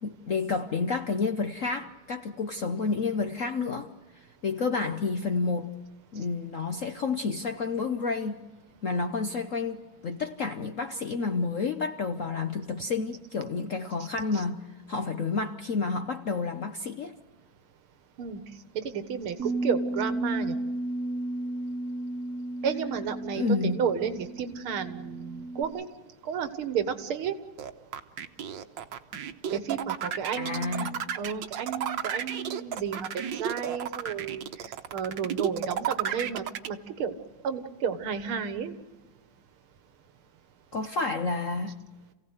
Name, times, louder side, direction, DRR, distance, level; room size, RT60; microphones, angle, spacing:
voice 1, 0.0-3.9 4.1-5.7 6.1-8.4 8.8-17.2 23.3-23.8 30.4-30.9 40.7-41.8, left 4 dB, 55° left, 7 dB, 0.9 m, -30 dB
voice 2, 18.7-20.6 22.6-25.8 26.2-27.4 29.5-33.1 33.3-34.4 34.9-37.1 37.4-38.8, right 7 dB, 90° right, 10 dB, 2.3 m, -32 dB
Bass guitar, 19.4-25.6, right 1 dB, 45° right, 1.6 m, -33 dB
sound 1, 27.6-36.7, right 8 dB, 65° right, 1.6 m, -32 dB
27.5 x 16.5 x 8.0 m, 1.2 s
omnidirectional pair, 2.3 m